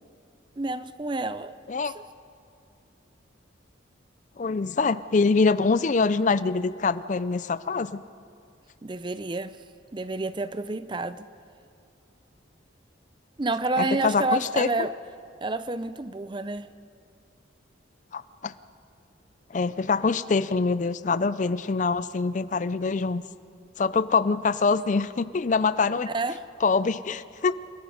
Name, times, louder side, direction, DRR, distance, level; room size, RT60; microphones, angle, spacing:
voice 1, 0.6-1.6 1.8-2.0 8.8-9.6 9.9-11.3 13.4-14.9 15.4-16.7 26.1-26.5, right 2 dB, 25° right, 0.5 m, -29 dB
voice 2, 4.4-8.0 13.8-14.7 18.1-18.5 19.5-23.2 23.8-26.1 26.6-27.6, left 4 dB, 40° left, 0.4 m, -24 dB
29.5 x 18.0 x 5.0 m
head